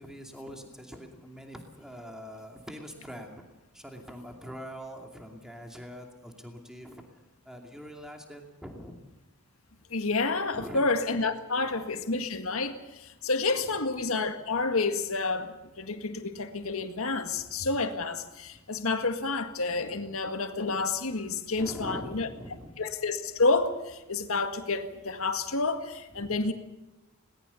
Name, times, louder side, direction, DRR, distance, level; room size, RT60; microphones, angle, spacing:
voice 1, 0.0-3.4 3.7-7.0 7.4-9.0 10.5-10.9 11.5-11.9 13.6-13.9 21.6-22.7 26.2-26.4, equal, 5° right, 2 dB, 2.6 m, -43 dB
voice 2, 9.9-22.3 22.8-26.5, left 3 dB, 70° left, 7 dB, 1.8 m, -29 dB
21.5 x 19.0 x 7.0 m, 1.0 s
head